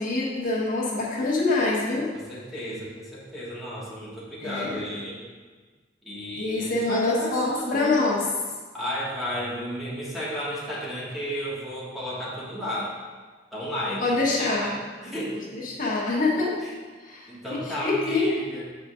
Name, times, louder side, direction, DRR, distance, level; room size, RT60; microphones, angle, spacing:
voice 1, 0.0-2.1 4.4-4.8 6.4-8.2 14.0-14.7 15.8-16.6 17.1-17.2 17.8-18.3, left 3 dB, 45° left, -5 dB, 1.3 m, -25 dB
voice 2, 2.1-5.2 6.0-8.0 8.7-13.0 13.5-15.7 16.6-16.7 17.3-18.6, equal, ahead, -7 dB, 1.5 m, -33 dB
7.3 x 5.0 x 3.7 m, 1.4 s
head